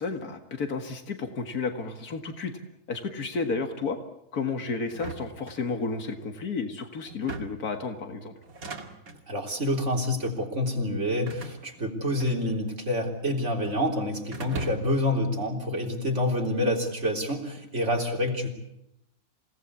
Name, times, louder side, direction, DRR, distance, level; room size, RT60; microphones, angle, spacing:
voice 1, 0.0-2.5 2.9-4.0 4.3-8.3, left 4 dB, 85° left, 6 dB, 2.2 m, -32 dB
sound 1, 4.9-6.1 7.1-7.7 8.4-9.2 10.0-10.4 11.3-12.8 13.0-13.8 14.3-15.1, right 3 dB, 70° right, 2.7 m, -40 dB
voice 2, 9.3-18.5, left 1 dB, 50° right, 2 dB, 4.1 m, -27 dB
28.0 x 18.0 x 8.4 m, 0.83 s
omnidirectional pair, 1.6 m